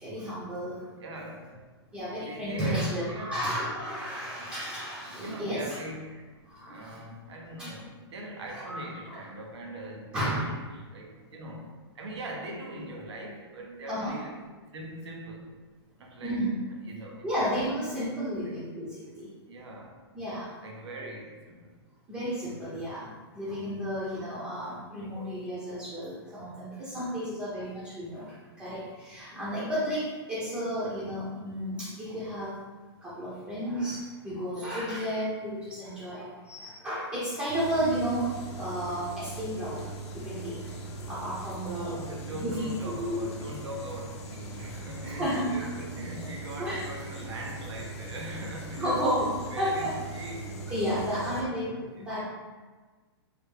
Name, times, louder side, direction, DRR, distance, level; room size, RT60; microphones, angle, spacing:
voice 1, 0.0-0.9 1.9-5.8 6.5-7.0 7.6-7.7 8.5-8.8 9.1-9.2 10.1-10.5 13.9-14.2 16.2-16.6 17.2-19.3 20.1-20.5 22.1-32.5 33.0-39.8 40.1-40.6 41.1-42.0 42.4-42.7 43.0-43.3 45.2-45.7 46.6-46.8 48.8-50.0 50.7-51.7 52.0-52.2, equal, 10° right, -11 dB, 0.6 m, -32 dB
voice 2, 0.9-1.6 2.1-3.3 5.0-6.3 6.7-14.4 14.7-15.6 16.0-17.5 19.5-20.0 20.6-21.7 41.6-49.0 49.5-51.7, right 1 dB, 80° right, 1 dB, 0.7 m, -41 dB
sound 1, 37.5-51.4, right 2 dB, 80° left, 0.6 m, -40 dB
3.4 x 2.2 x 3.2 m, 1.3 s
hypercardioid pair, 150°, 14 cm